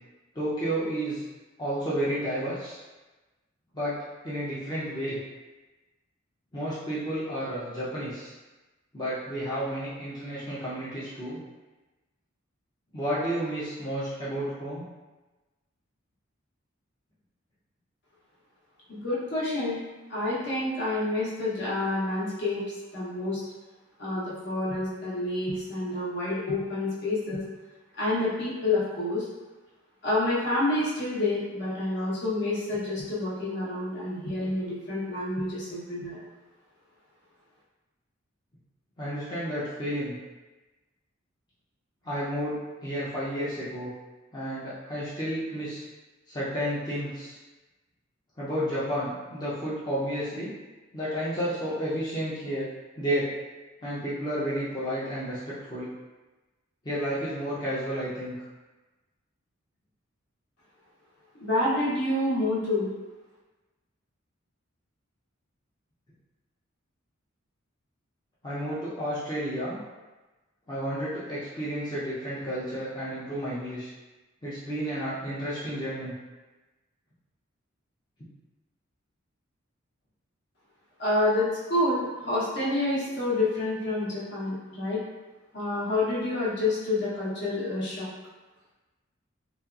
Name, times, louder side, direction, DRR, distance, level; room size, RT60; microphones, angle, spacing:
voice 1, 0.3-1.2 1.6-2.8 3.7-3.9 4.2-5.2 6.5-8.3 8.9-11.4 12.9-14.9 39.0-40.1 42.0-43.9 44.3-45.8 46.3-47.3 48.4-50.5 50.9-52.7 53.0-53.3 53.8-55.9 56.8-58.3 68.4-69.8 70.7-73.9 74.4-76.1, equal, 20° left, -10 dB, 0.5 m, -31 dB
voice 2, 18.9-19.8 20.1-22.6 22.9-23.4 24.0-27.4 28.0-29.3 30.0-36.3 61.4-62.9 81.0-85.0 85.5-88.1, left 2 dB, 55° left, -8 dB, 0.9 m, -28 dB
2.7 x 2.3 x 2.3 m, 1.2 s
head